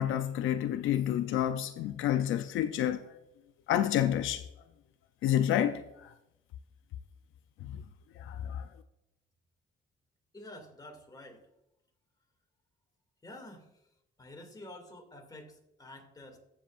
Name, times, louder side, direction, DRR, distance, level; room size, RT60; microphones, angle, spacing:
voice 1, 0.0-3.2 3.7-4.5 5.2-6.1 7.6-7.8 8.2-8.7, left 11 dB, 85° left, 0.6 m, -29 dB
voice 2, 10.3-11.5 13.2-13.9 14.2-16.4, left 1 dB, 20° left, 2.4 m, -49 dB
15.5 x 7.2 x 2.5 m
cardioid pair, 90°, 20 cm